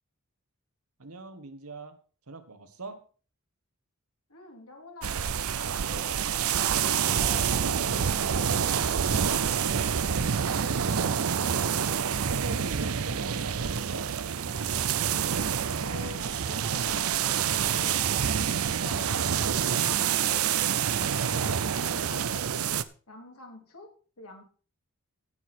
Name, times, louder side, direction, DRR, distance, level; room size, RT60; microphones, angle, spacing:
voice 1, 1.0-2.0 2.3-3.0 10.5-11.6 12.2-14.1, right 3 dB, 90° right, 8 dB, 1.6 m, -42 dB
voice 2, 4.3-5.2 5.6-8.8 15.8-18.0 18.6-20.5 21.0-22.4 23.1-23.9 24.2-24.4, left 3 dB, 85° left, 2 dB, 3.2 m, -46 dB
sound 1, 5.0-22.8, right 8 dB, 75° right, 0.6 m, -27 dB
16.5 x 6.4 x 4.4 m, 0.39 s
head